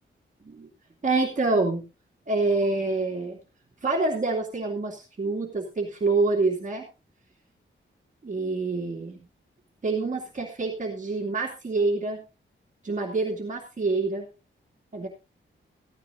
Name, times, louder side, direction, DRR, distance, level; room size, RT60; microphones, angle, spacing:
voice 1, 1.0-1.8 2.3-3.4 3.8-6.9 8.2-9.2 9.8-12.2 12.8-14.3 14.9-15.1, right 3 dB, 40° right, -2 dB, 2.6 m, -26 dB
15.5 x 14.0 x 2.7 m, 0.29 s
wide cardioid pair, 160°, 21 cm